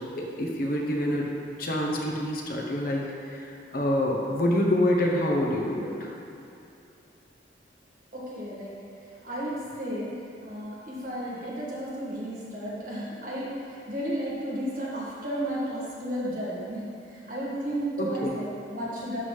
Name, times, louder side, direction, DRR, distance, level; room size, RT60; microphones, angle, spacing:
voice 1, 0.2-1.3 1.6-6.1 18.0-18.3, left 1 dB, 50° left, -1 dB, 0.8 m, -27 dB
voice 2, 8.1-8.7 9.2-10.1 10.4-19.2, right 1 dB, 50° right, -7 dB, 1.6 m, -33 dB
11.0 x 3.9 x 3.3 m, 2.7 s
head